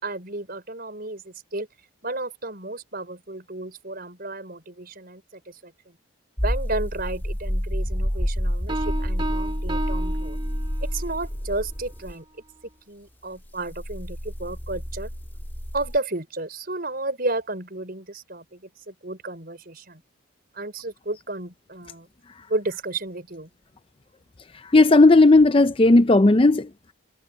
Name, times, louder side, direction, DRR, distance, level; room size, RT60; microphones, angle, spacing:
voice 1, 0.0-1.7 2.0-6.0 6.4-10.4 10.8-12.2 12.9-15.1 15.7-20.0 20.5-22.1 22.5-23.5, right 2 dB, 45° right, 5.6 m, -32 dB
sound 1, 6.4-12.1 13.6-16.0, equal, 10° left, 1.8 m, -28 dB
sound 2, 8.7-11.1, right 1 dB, 25° right, 3.2 m, -32 dB
voice 2, 24.7-26.9, left 2 dB, 25° left, 0.5 m, -15 dB
head